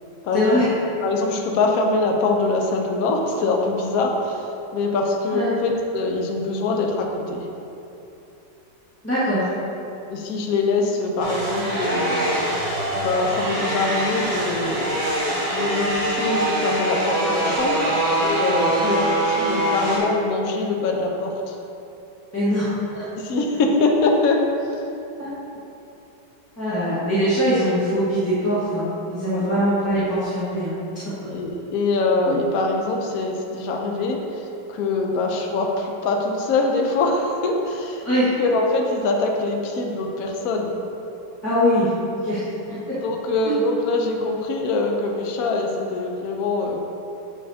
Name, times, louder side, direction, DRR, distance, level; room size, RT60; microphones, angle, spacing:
voice 1, 0.3-0.6 5.3-5.5 9.0-9.5 22.3-23.0 25.2-25.3 26.6-30.7 32.3-32.4 38.0-38.3 41.4-42.5 43.4-43.6, equal, 10° left, -13 dB, 1.3 m, -22 dB
voice 2, 1.0-7.5 10.1-12.3 13.0-15.0 15.5-21.6 23.1-24.8 29.3-29.4 31.2-38.1 38.4-40.8 43.0-46.9, left 3 dB, 60° left, 1 dB, 0.9 m, -23 dB
sound 1, 11.2-20.0, right 1 dB, 65° right, 2.4 m, -23 dB
7.1 x 7.1 x 2.8 m, 2.9 s
omnidirectional pair, 2.2 m